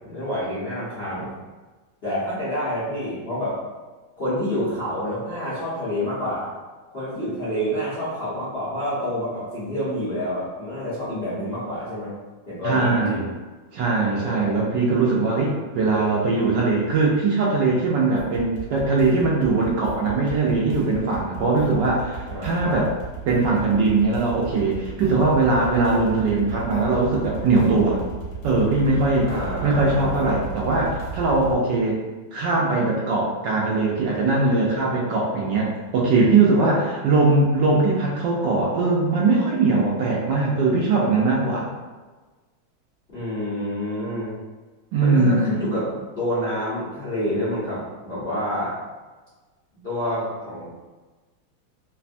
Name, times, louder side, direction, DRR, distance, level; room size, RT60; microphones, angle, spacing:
voice 1, 0.0-1.3 2.0-3.6 4.2-6.5 6.9-12.1 12.5-13.3 14.1-14.7 22.3-22.8 29.2-30.4 43.1-44.4 45.0-48.7 49.8-50.7, equal, 85° left, -11 dB, 0.5 m, -28 dB
voice 2, 12.6-13.3 13.7-22.9 23.3-28.0 28.4-29.3 29.6-32.0 32.3-41.7 44.9-45.5, right 3 dB, 75° right, -3 dB, 1.0 m, -21 dB
sound 1, 18.1-31.5, right 5 dB, 70° left, 1.2 m, -35 dB
3.3 x 2.2 x 2.5 m, 1.3 s
omnidirectional pair, 2.2 m